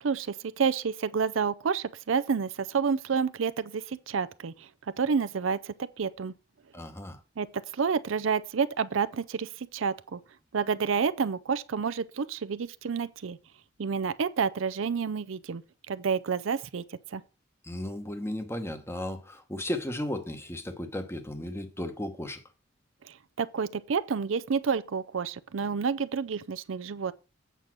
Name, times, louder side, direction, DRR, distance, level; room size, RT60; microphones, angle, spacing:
voice 1, 0.0-4.7 5.0-6.3 7.4-10.2 10.5-13.4 13.8-15.6 15.9-16.8 17.1-17.2 23.0-27.1, right 6 dB, 75° right, 0.5 m, -29 dB
voice 2, 6.7-7.2 17.6-22.4, left 1 dB, 15° left, 1.1 m, -35 dB
8.2 x 5.4 x 6.0 m
head